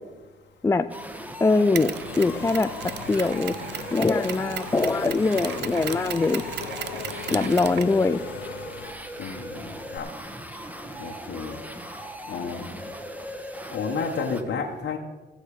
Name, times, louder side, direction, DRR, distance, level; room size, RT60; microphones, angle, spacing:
sound 1, 0.9-14.4, right 1 dB, 5° right, 1.3 m, -39 dB
voice 1, 1.4-2.7 3.1-3.6 3.9-6.4 7.3-8.2, left 3 dB, 15° left, 10 dB, 0.4 m, -22 dB
Mechanisms, 1.7-10.0, right 10 dB, 60° right, 0.5 m, -37 dB
Engine / Mechanisms, 2.0-8.9, left 11 dB, 90° left, 0.6 m, -39 dB
voice 2, 7.3-7.7 9.2-10.1 11.0-11.6 12.3-12.7 13.7-15.0, left 5 dB, 70° left, 0 dB, 1.3 m, -32 dB
17.0 x 6.5 x 4.9 m, 1.3 s
cardioid pair, 90°, 20 cm